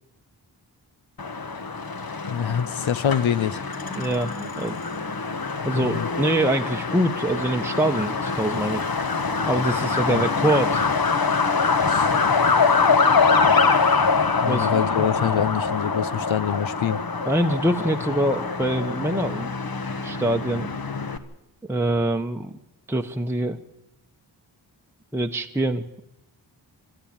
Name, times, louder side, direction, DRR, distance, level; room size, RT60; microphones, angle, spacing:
Truck, 1.2-21.2, left 4 dB, 50° left, 1.4 m, -24 dB
voice 1, 2.3-3.6 5.6-6.1 10.1-10.2 11.9-12.1 14.4-17.0, left 9 dB, 90° left, 16 dB, 0.8 m, -25 dB
voice 2, 3.9-4.8 5.6-8.9 9.5-10.9 14.4-15.0 17.3-19.5 20.0-20.7 21.7-22.6 22.9-23.6 25.1-26.0, right 1 dB, 5° right, 3 dB, 0.9 m, -24 dB
23.0 x 13.0 x 8.8 m, 0.87 s
wide cardioid pair, 70°, 45 cm